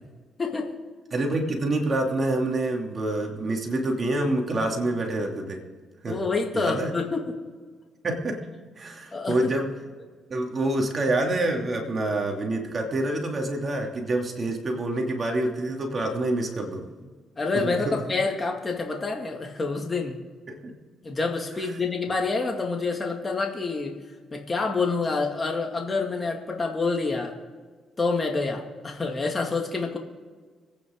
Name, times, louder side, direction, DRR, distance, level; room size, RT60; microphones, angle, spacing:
voice 1, 0.4-0.8 6.1-7.3 9.1-9.4 17.4-20.2 21.0-23.9 24.3-27.3 28.0-30.0, left 4 dB, 30° left, 1 dB, 2.3 m, -27 dB
voice 2, 1.1-5.6 6.0-6.2 6.5-6.9 8.0-8.4 8.8-9.7 10.3-16.8 17.5-18.0 20.5-20.7, right 2 dB, 40° right, 1 dB, 2.8 m, -27 dB
25.5 x 9.5 x 3.9 m, 1.5 s
cardioid pair, 90°, 0 cm